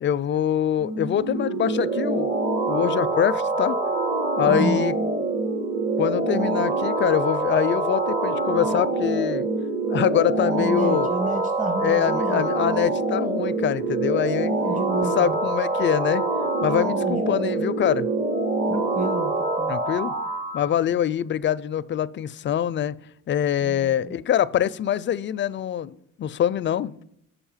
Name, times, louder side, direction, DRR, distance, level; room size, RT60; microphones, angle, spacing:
voice 1, 0.0-3.8 4.4-4.9 6.0-9.5 9.9-11.1 11.8-14.6 15.0-16.2 16.6-18.1 19.7-20.1 20.5-23.0 23.3-26.9, left 10 dB, 40° left, 0.4 m, -24 dB
sound 1, 0.8-20.7, right 2 dB, 45° right, 1.6 m, -25 dB
voice 2, 4.5-4.8 10.6-12.6 14.5-15.4 16.9-17.6 18.7-19.7 23.6-24.1, right 3 dB, 25° right, 1.2 m, -30 dB
6.8 x 5.6 x 7.2 m
cardioid pair, 90°, 30 cm